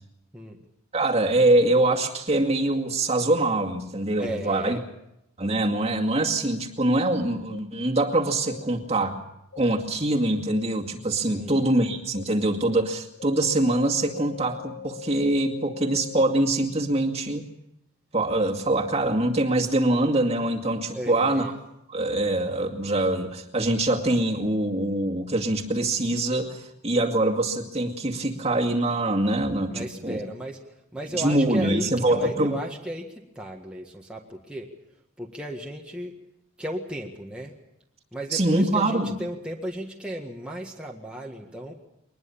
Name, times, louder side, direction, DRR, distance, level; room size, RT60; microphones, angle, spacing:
voice 1, 0.9-4.8 5.4-9.2 9.6-17.4 18.1-21.5 21.9-30.2 31.1-32.5 38.3-39.1, right 1 dB, 30° right, 1 dB, 2.2 m, -24 dB
voice 2, 4.2-4.8 11.2-11.6 20.9-21.5 29.7-34.7 35.2-36.2 36.6-37.6 38.1-41.7, right 1 dB, 5° right, -1 dB, 1.8 m, -35 dB
sound 1, 7.5-7.6 8.5-8.6 9.5-9.6 10.5-10.6 11.5-11.6 12.1-12.2 12.7-12.8 13.2-16.4, left 9 dB, 75° left, 1.6 m, -41 dB
23.0 x 20.5 x 7.1 m, 0.82 s
head